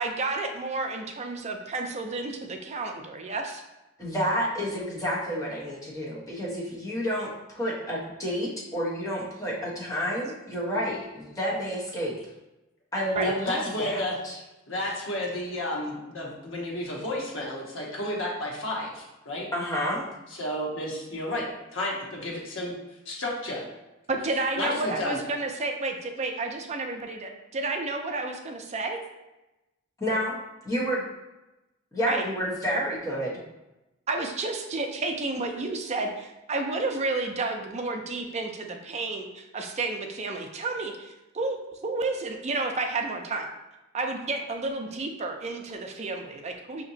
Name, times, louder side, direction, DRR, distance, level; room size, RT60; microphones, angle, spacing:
voice 1, 0.0-3.6 13.2-13.3 14.8-14.9 24.1-29.0 32.0-32.2 34.1-41.6 41.8-43.5 43.9-46.8, right 3 dB, 35° right, 4 dB, 0.5 m, -31 dB
voice 2, 4.0-12.1 12.9-14.4 19.5-20.1 30.0-30.4 30.6-31.0 31.9-33.4, equal, 15° left, -6 dB, 1.1 m, -30 dB
voice 3, 13.2-19.5 20.3-21.5 21.7-22.7 23.1-23.6 24.6-25.2, left 1 dB, 80° left, -3 dB, 1.0 m, -32 dB
5.2 x 2.9 x 2.7 m, 0.98 s
head